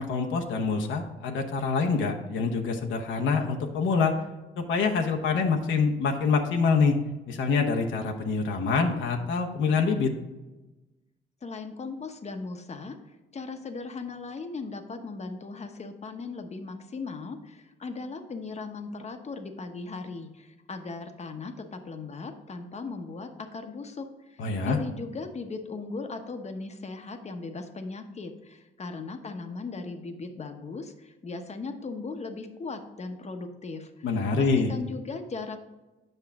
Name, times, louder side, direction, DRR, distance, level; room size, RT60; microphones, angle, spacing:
voice 1, 0.0-4.1 4.6-7.0 7.3-10.1 24.4-24.8 34.0-34.7, left 4 dB, 75° left, 2 dB, 0.9 m, -25 dB
voice 2, 11.4-34.1 34.4-35.6, left 3 dB, 35° left, 6 dB, 0.9 m, -38 dB
8.0 x 5.6 x 3.6 m, 1.1 s
cardioid pair, 90°, 20 cm